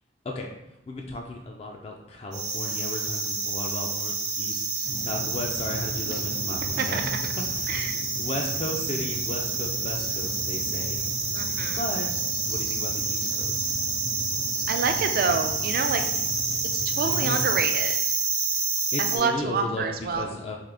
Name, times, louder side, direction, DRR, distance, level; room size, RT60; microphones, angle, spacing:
voice 1, 0.9-7.1 7.5-7.7 8.2-11.0 11.8-12.1 12.5-13.7 16.9-17.5 18.5-18.6 18.9-20.6, left 2 dB, 35° left, 0 dB, 0.3 m, -35 dB
sound 1, 2.3-19.2, right 4 dB, 75° right, 0.8 m, -28 dB
sound 2, 4.8-17.6, equal, 70° left, 1.2 m, -39 dB
voice 2, 7.7-8.0 11.3-11.8 14.7-16.0 16.7-18.0 19.0-20.3, right 5 dB, 55° right, 6 dB, 0.4 m, -27 dB
3.7 x 2.7 x 3.3 m, 0.87 s
head